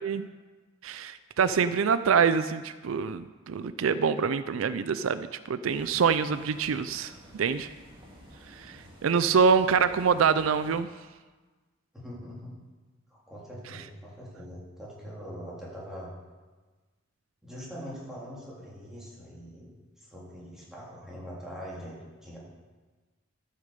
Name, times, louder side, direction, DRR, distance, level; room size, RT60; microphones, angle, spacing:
voice 1, 0.8-7.7 8.6-10.9, right 6 dB, 80° right, 13 dB, 0.4 m, -25 dB
sound 1, 5.7-10.8, equal, 25° right, 2.2 m, -51 dB
voice 2, 11.9-12.6 13.1-16.1 17.4-22.4, equal, ahead, -7 dB, 3.6 m, -43 dB
13.0 x 6.5 x 6.7 m, 1.3 s
head